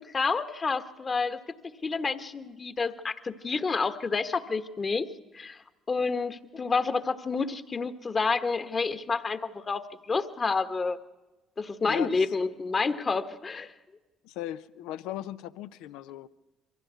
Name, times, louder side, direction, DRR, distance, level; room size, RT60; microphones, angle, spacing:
voice 1, 0.1-1.4 1.8-5.1 5.3-11.0 11.6-13.7, left 4 dB, 35° left, 1.3 m, -29 dB
voice 2, 11.9-12.3 14.2-16.3, left 13 dB, 80° left, 0.6 m, -38 dB
23.0 x 15.5 x 8.2 m
hypercardioid pair, 65°, 0 cm